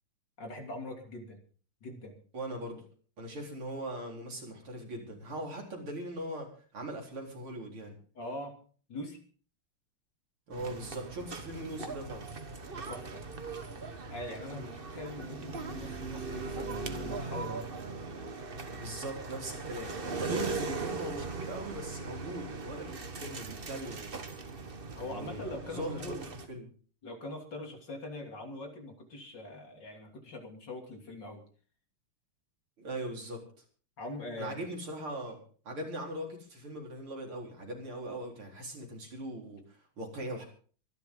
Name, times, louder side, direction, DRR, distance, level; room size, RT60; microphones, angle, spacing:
voice 1, 0.4-1.4 1.8-2.2 8.2-8.5 8.9-9.2 12.9-13.3 14.1-17.6 25.0-26.2 27.0-31.4 34.0-34.6, left 1 dB, 50° left, 3 dB, 3.5 m, -42 dB
voice 2, 2.3-2.8 3.2-7.9 10.5-12.3 14.4-14.7 18.8-24.4 25.0-26.2 26.5-26.7 32.8-33.4 34.4-35.4 35.6-40.4, right 1 dB, 70° right, 0 dB, 5.0 m, -40 dB
sound 1, 10.5-26.5, right 4 dB, 30° right, 1.2 m, -39 dB
24.0 x 11.5 x 3.9 m, 0.42 s
omnidirectional pair, 2.4 m